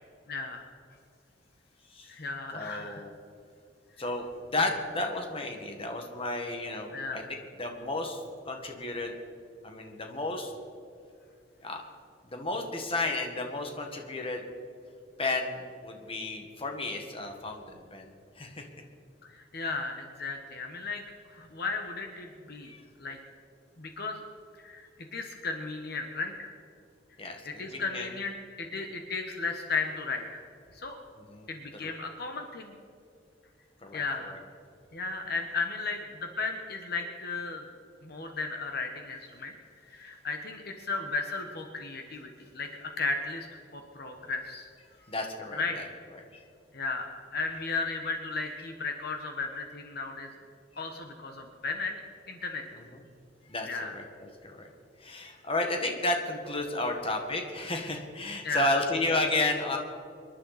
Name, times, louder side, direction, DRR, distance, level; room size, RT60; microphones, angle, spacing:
voice 1, 0.3-0.7 2.1-3.0 6.9-7.2 19.2-21.0 21.3-22.7 23.0-23.2 23.8-24.2 24.6-26.5 27.4-30.4 30.7-31.0 31.5-32.7 33.9-34.4 34.9-37.6 38.0-39.5 39.9-43.5 43.7-44.7 45.5-45.8 46.7-50.3 50.8-52.0 52.3-52.8 53.7-53.9 58.4-58.7, left 4 dB, 60° left, 4 dB, 1.2 m, -35 dB
voice 2, 2.5-3.1 4.0-7.2 7.6-9.2 9.6-10.5 11.6-11.8 12.2-14.4 15.2-18.7 22.6-22.8 27.2-28.1 31.2-31.5 31.8-31.9 33.8-34.4 45.1-45.8 46.1-46.4 50.8-50.9 52.7-53.0 53.5-54.7 55.0-59.8, left 2 dB, 30° left, 3 dB, 1.8 m, -33 dB
26.0 x 11.0 x 4.2 m, 2.4 s
head